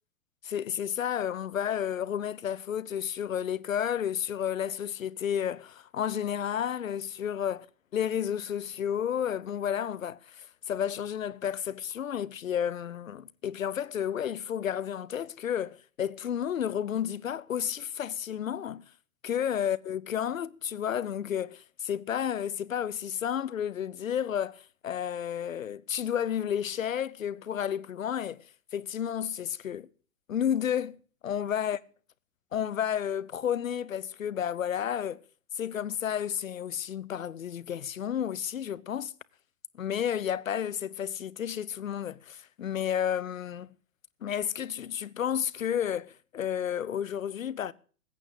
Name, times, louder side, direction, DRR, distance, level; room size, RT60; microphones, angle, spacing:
voice 1, 0.4-7.7 7.9-18.8 19.2-28.5 28.7-29.9 30.3-31.0 31.2-31.8 32.5-35.2 35.6-39.1 39.7-43.7 44.2-47.7, left 9 dB, 70° left, 0.8 m, -31 dB
14.5 x 9.0 x 7.8 m
figure-of-eight pair, 110°, 41 cm